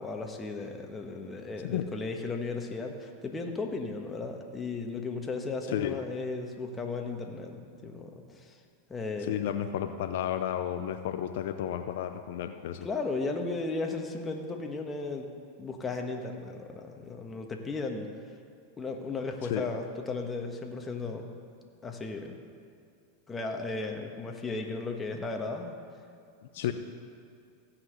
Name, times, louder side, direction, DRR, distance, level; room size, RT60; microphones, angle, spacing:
voice 1, 0.0-8.6 8.9-9.4 12.8-15.3 15.6-18.1 18.8-21.3 21.8-22.3 23.3-25.7 26.6-26.7, left 3 dB, 20° left, 2 dB, 1.5 m, -35 dB
voice 2, 5.7-6.0 9.2-12.9 19.4-19.7 26.5-26.7, left 11 dB, 70° left, 7 dB, 0.6 m, -32 dB
15.5 x 5.9 x 8.1 m, 2.3 s
hypercardioid pair, 110°, 0 cm